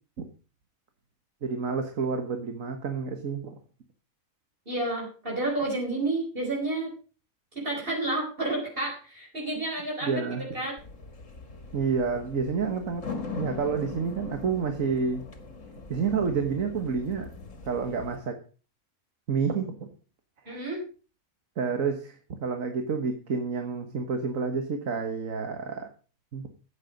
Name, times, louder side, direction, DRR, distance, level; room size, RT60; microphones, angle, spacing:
voice 1, 1.4-3.6 10.0-10.6 11.7-15.2 15.9-17.3 17.7-18.4 19.3-19.9 20.5-20.6 21.6-25.9 26.3-26.5, right 5 dB, 70° right, 6 dB, 1.8 m, -29 dB
voice 2, 4.7-6.9 7.5-10.2 10.5-10.7 20.4-20.8, right 2 dB, 40° right, -2 dB, 5.0 m, -30 dB
sound 1, 10.8-18.2, left 4 dB, 65° left, 2.4 m, -41 dB
15.0 x 8.3 x 5.3 m, 0.36 s
omnidirectional pair, 1.4 m